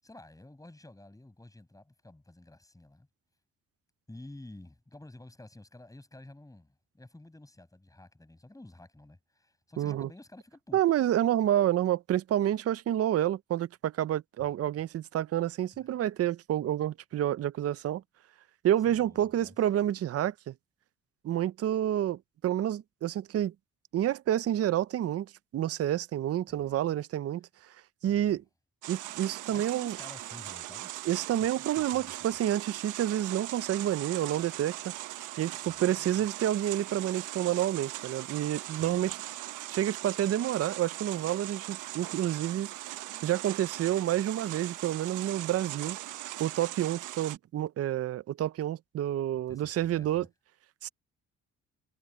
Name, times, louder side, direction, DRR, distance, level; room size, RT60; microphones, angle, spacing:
voice 1, 0.0-3.1 4.1-10.8 15.8-16.0 18.9-19.5 26.5-27.0 28.0-28.4 29.5-30.9 31.5-32.5 35.5-36.3 38.7-39.1 49.5-50.3, left 2 dB, 10° left, 6.0 m, -51 dB
voice 2, 9.8-10.1 10.7-18.0 18.6-20.5 21.2-23.5 23.9-27.5 28.0-28.4 28.9-30.0 31.1-34.9 35.4-39.2 39.7-42.7 43.2-46.0 46.4-50.3 50.8-50.9, right 12 dB, 50° right, 0.6 m, -29 dB
sound 1, 28.8-47.4, right 15 dB, 90° right, 1.2 m, -40 dB
cardioid pair, 90°, 30 cm